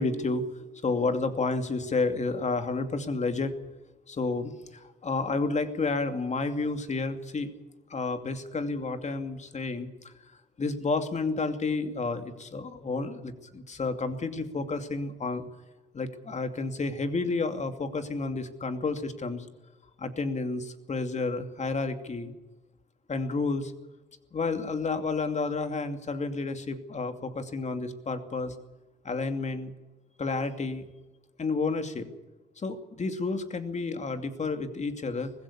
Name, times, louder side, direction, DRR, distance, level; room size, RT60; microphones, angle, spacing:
voice 1, 0.0-3.5 4.1-7.5 7.9-10.1 10.6-15.5 15.9-19.5 20.0-22.3 23.1-23.7 24.3-28.6 29.0-29.7 30.2-30.8 31.4-32.1 32.6-35.3, left 3 dB, 35° left, 8 dB, 2.6 m, -30 dB
20.5 x 16.0 x 8.6 m, 1.1 s
cardioid pair, 90°, 20 cm